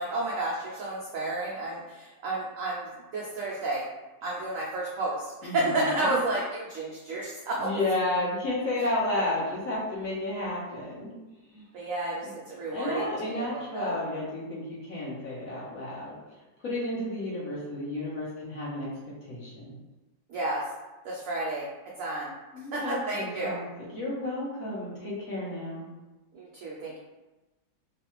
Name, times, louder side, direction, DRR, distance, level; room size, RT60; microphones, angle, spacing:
voice 1, 0.0-3.8 4.2-7.7 8.8-8.9 11.7-13.9 20.3-20.6 21.0-21.7 22.0-22.3 22.7-23.6 26.3-27.0, right 2 dB, 85° right, -4 dB, 0.7 m, -31 dB
voice 2, 5.4-6.2 7.6-11.1 11.5-11.6 12.2-12.3 12.7-16.2 16.6-18.9 19.3-19.8 22.5-25.9, left 2 dB, 55° left, -7 dB, 1.1 m, -32 dB
3.2 x 2.2 x 3.0 m, 1.1 s
omnidirectional pair, 2.0 m